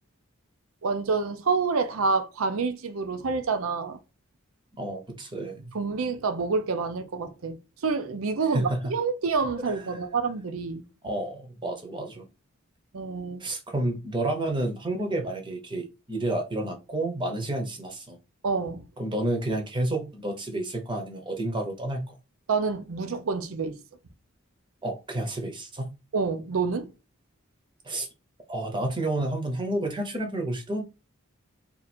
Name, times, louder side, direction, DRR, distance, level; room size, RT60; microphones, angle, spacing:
voice 1, 0.8-4.0 5.7-7.6 7.8-10.8 12.9-13.4 18.4-18.9 22.5-23.8 26.1-26.9, right 4 dB, 80° right, 0.6 m, -27 dB
voice 2, 4.8-5.7 8.5-8.8 11.0-12.2 13.4-18.2 19.0-22.0 24.8-25.9 27.8-28.1 28.5-30.8, right 1 dB, 20° right, 0.8 m, -30 dB
2.7 x 2.5 x 4.2 m
head